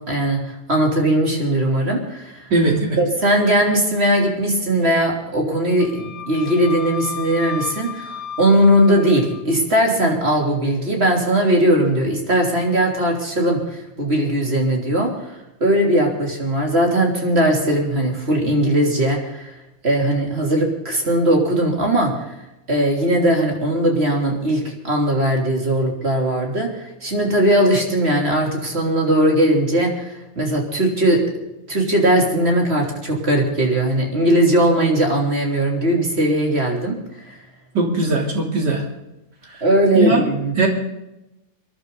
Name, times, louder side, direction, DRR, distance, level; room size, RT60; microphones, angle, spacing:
voice 1, 0.1-2.5 3.0-19.6 19.8-22.3 22.7-31.2 31.7-36.9 37.3-37.4 39.6-40.6, right 1 dB, 35° right, 0 dB, 3.6 m, -19 dB
voice 2, 2.5-3.0 37.7-38.8 39.9-40.2 40.6-40.7, right 3 dB, 80° right, 0 dB, 4.0 m, -19 dB
Wind instrument woodwind instrument, 5.8-9.4, left 7 dB, 75° left, 1.8 m, -33 dB
26.5 x 11.0 x 4.0 m, 0.93 s
omnidirectional pair, 1.8 m